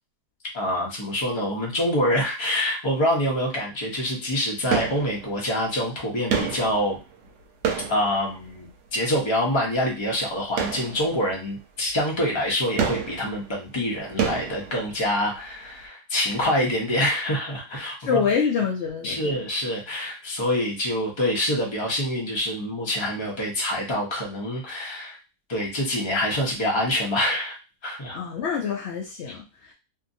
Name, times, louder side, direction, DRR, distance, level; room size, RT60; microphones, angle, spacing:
voice 1, 0.5-7.0 7.9-18.2 19.0-25.2 25.5-27.6 27.8-28.2, left 1 dB, 30° left, -2 dB, 0.5 m, -26 dB
sound 1, 4.7-5.6 6.3-8.9 10.5-11.5 11.9-12.0 12.8-15.4 15.6-15.7, right 7 dB, 80° right, 1.2 m, -29 dB
voice 2, 18.0-19.4 28.1-29.7, left 6 dB, 90° left, 0 dB, 0.6 m, -26 dB
2.7 x 2.6 x 2.6 m, 0.30 s
omnidirectional pair, 1.8 m